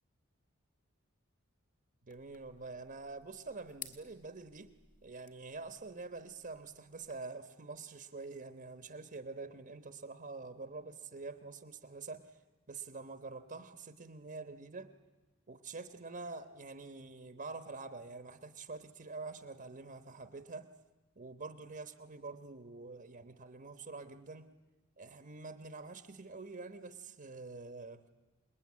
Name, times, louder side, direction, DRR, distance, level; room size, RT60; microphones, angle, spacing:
voice 1, 2.0-4.7 5.0-12.4 12.7-14.9 15.5-20.7 21.2-24.5 25.0-28.0, right 3 dB, 40° right, 9 dB, 1.1 m, -46 dB
sound 1, 2.1-7.1, left 8 dB, 40° left, 1.8 m, -56 dB
27.5 x 20.5 x 9.7 m, 1.1 s
head